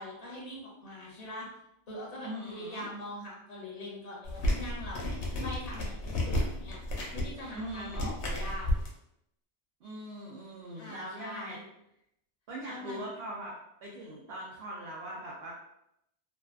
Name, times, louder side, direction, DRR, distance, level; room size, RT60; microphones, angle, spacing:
voice 1, 0.0-1.5 1.9-6.8 7.1-8.7 10.8-11.6 12.7-13.0, left 1 dB, 40° left, -4 dB, 0.8 m, -42 dB
voice 2, 2.2-2.9 7.5-8.1 9.8-11.6 12.5-13.5 13.8-15.5, right 1 dB, 65° right, -4 dB, 0.8 m, -41 dB
sound 1, 4.2-8.9, left 1 dB, 80° left, 0.9 m, -32 dB
2.5 x 2.2 x 2.3 m, 0.80 s
omnidirectional pair, 1.1 m